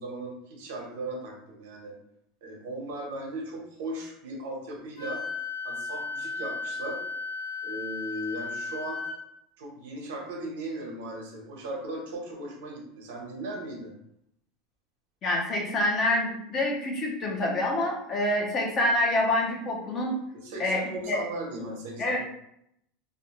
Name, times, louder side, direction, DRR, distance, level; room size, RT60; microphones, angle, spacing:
voice 1, 0.0-2.0 2.4-5.2 5.6-7.0 7.6-9.0 9.6-13.9 20.3-22.2, right 1 dB, 85° right, -1 dB, 0.9 m, -37 dB
Wind instrument woodwind instrument, 5.0-9.2, left 4 dB, 85° left, 1.0 m, -35 dB
voice 2, 15.2-20.1 20.6-20.8 21.1-21.2 22.0-22.2, left 1 dB, 30° left, -1 dB, 0.6 m, -26 dB
2.6 x 2.2 x 2.9 m, 0.75 s
supercardioid pair, 155°, 0 cm